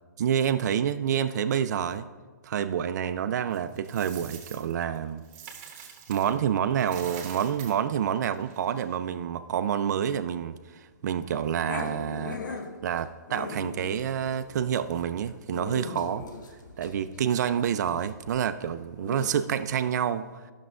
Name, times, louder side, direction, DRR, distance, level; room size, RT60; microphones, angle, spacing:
voice 1, 0.2-2.1 2.4-5.2 5.8-12.6 12.8-16.3 16.8-20.4, right 9 dB, 65° right, 11 dB, 0.4 m, -28 dB
Coin (dropping), 3.5-6.4 6.7-9.0, right 7 dB, 45° right, 1.3 m, -46 dB
Growling, 11.7-19.3, left 4 dB, 85° left, 0.9 m, -40 dB
12.5 x 6.1 x 2.4 m, 1.4 s
hypercardioid pair, 140°, 10 cm